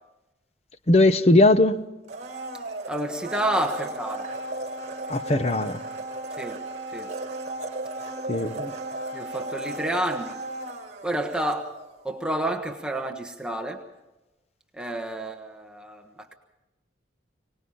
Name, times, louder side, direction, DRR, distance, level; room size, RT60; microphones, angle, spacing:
voice 1, 0.9-1.7 5.1-5.8 8.3-8.7, left 2 dB, 35° left, 0.8 m, -19 dB
Domestic sounds home sounds, 2.0-12.0 12.3-12.4, right 2 dB, 40° right, 4.3 m, -35 dB
voice 2, 2.9-4.3 6.4-6.6 6.9-7.1 9.1-10.4 11.0-11.7 12.0-13.8 14.7-16.3, right 1 dB, 5° right, 1.3 m, -29 dB
24.0 x 19.5 x 5.7 m
head